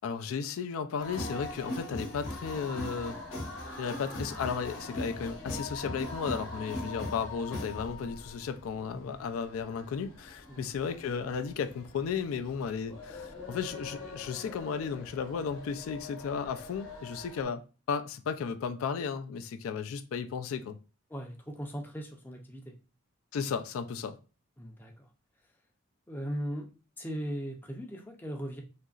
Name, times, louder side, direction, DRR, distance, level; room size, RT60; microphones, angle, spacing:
voice 1, 0.0-3.2 3.8-17.6 17.9-20.8 23.3-24.2, left 6 dB, 85° left, 0.3 m, -34 dB
sound 1, 1.0-17.4, left 2 dB, 70° left, 0.9 m, -41 dB
voice 2, 21.1-22.7 24.6-25.1 26.1-26.7 27.0-28.6, equal, 10° left, 0.4 m, -38 dB
2.8 x 2.5 x 2.3 m
head